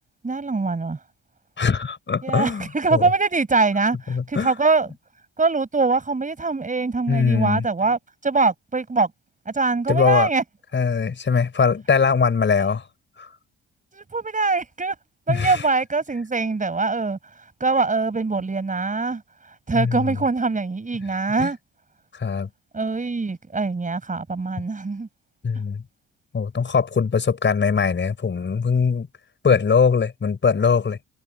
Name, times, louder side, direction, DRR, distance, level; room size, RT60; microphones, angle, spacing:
voice 1, 0.2-1.0 2.2-4.9 5.4-9.1 9.5-10.4 13.9-14.9 15.3-17.2 17.6-19.2 19.7-21.6 22.7-25.1, right 3 dB, 25° right, 6.1 m, -23 dB
voice 2, 1.6-3.0 4.1-4.5 7.1-7.6 9.9-10.3 10.7-12.9 13.2-13.3 15.3-15.7 19.7-20.2 21.4-21.5 22.1-22.5 25.4-25.8 26.3-29.1 29.4-31.0, left 5 dB, 40° left, 5.6 m, -21 dB
cardioid pair, 90°, 30 cm